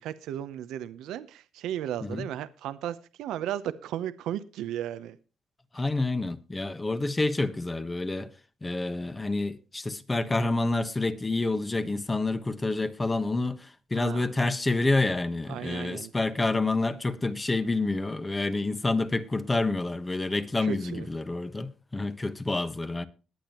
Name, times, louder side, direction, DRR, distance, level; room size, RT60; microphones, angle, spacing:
voice 1, 0.0-5.2 13.9-14.2 15.5-16.1 20.6-21.1, right 11 dB, 85° right, 0.8 m, -35 dB
voice 2, 5.7-8.3 8.6-23.1, left 2 dB, 20° left, 1.3 m, -28 dB
21.0 x 8.7 x 3.0 m
cardioid pair, 90°, 0 cm